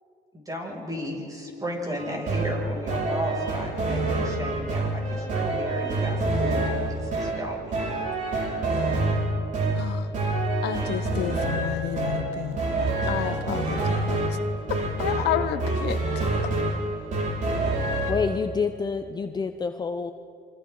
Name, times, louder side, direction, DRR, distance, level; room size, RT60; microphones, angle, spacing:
voice 1, 0.3-7.9, equal, 20° right, -1 dB, 6.9 m, -34 dB
sound 1, 2.0-18.1, right 2 dB, 50° right, 5.1 m, -27 dB
voice 2, 10.6-12.6 13.1-14.2 15.0-16.0, left 11 dB, 80° left, 10 dB, 1.1 m, -30 dB
voice 3, 18.1-20.1, left 5 dB, 25° left, 7 dB, 0.8 m, -27 dB
28.5 x 26.0 x 4.0 m, 2.6 s
cardioid pair, 110°, 17 cm